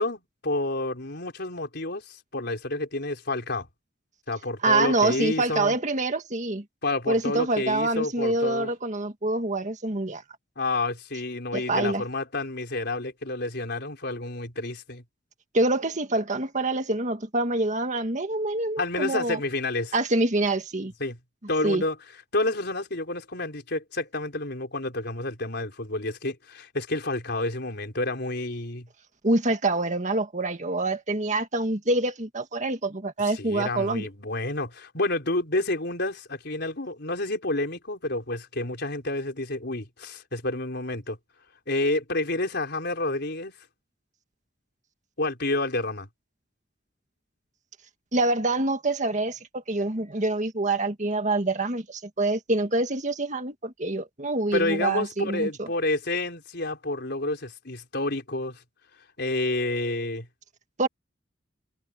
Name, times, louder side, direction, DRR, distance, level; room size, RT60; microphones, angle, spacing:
voice 1, 0.0-3.7 4.3-5.7 6.8-8.7 10.6-15.0 18.8-20.0 21.0-21.2 21.5-22.0 22.3-28.9 33.3-41.2 41.7-43.6 45.2-46.1 54.5-58.6 59.2-60.3, left 2 dB, 60° left, 4.6 m, -29 dB
voice 2, 4.6-6.6 7.1-10.2 11.5-12.0 15.5-19.4 19.9-20.9 21.6-21.8 29.2-34.1 48.1-55.7 60.8-60.9, right 2 dB, 40° right, 1.9 m, -26 dB
head